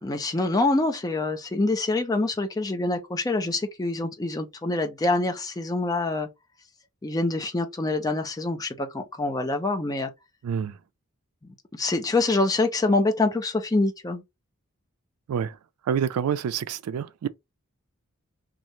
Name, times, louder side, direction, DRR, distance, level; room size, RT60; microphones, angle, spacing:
voice 1, 0.0-6.3 7.0-10.1 11.7-14.2, left 2 dB, 15° left, 0.5 m, -25 dB
voice 2, 10.4-10.8 15.3-15.6 15.9-17.3, right 8 dB, 85° right, 0.3 m, -27 dB
2.7 x 2.4 x 3.1 m
head